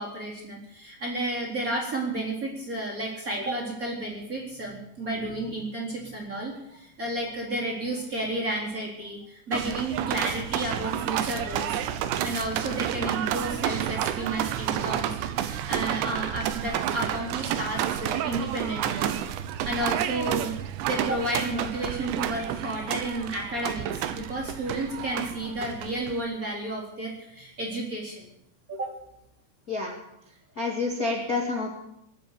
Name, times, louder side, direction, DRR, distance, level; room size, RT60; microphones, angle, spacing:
voice 1, 0.0-11.8 12.2-19.2 19.6-28.3 28.7-28.9, right 1 dB, 20° right, -3 dB, 4.0 m, -32 dB
sound 1, 9.5-26.2, right 11 dB, 85° right, 3.2 m, -30 dB
voice 2, 30.6-31.7, left 3 dB, 40° left, -1 dB, 1.3 m, -28 dB
23.5 x 8.1 x 6.9 m, 0.79 s
omnidirectional pair, 5.1 m